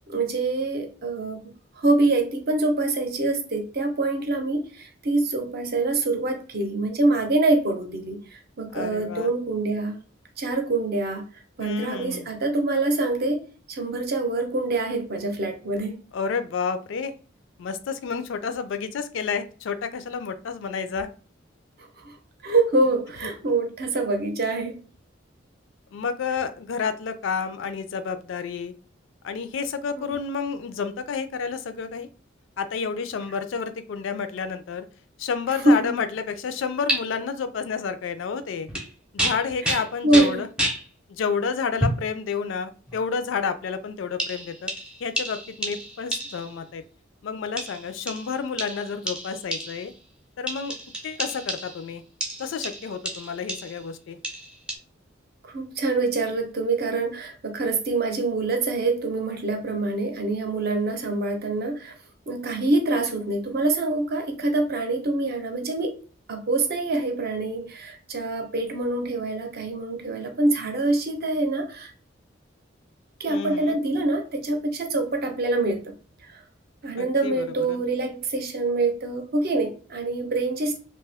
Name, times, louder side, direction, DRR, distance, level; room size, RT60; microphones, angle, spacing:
voice 1, 0.1-10.0 10.4-11.3 11.6-16.0 22.0-22.1 22.4-24.8 30.0-30.1 35.6-35.9 39.6-40.4 55.4-61.9 62.3-65.9 66.3-71.9 73.2-75.9 76.2-76.4 76.8-80.8, right 2 dB, 50° right, 5 dB, 0.6 m, -25 dB
voice 2, 8.7-9.3 11.6-12.3 16.1-17.1 17.6-21.1 25.9-28.7 29.2-32.1 32.6-34.9 35.2-38.7 39.1-40.5 41.1-44.7 45.0-46.8 47.2-49.9 50.4-50.8 51.0-52.0 52.4-54.2 73.3-73.8 77.0-77.8, left 5 dB, 70° left, 10 dB, 0.3 m, -30 dB
sound 1, 36.9-37.0 38.7-38.9 39.2-40.8 41.8-42.1 42.9-43.0 44.2-46.6 47.6-50.0 50.5-51.9 52.2-53.8 54.2-54.8, right 1 dB, 5° right, 0.5 m, -30 dB
2.6 x 2.2 x 3.4 m, 0.38 s
head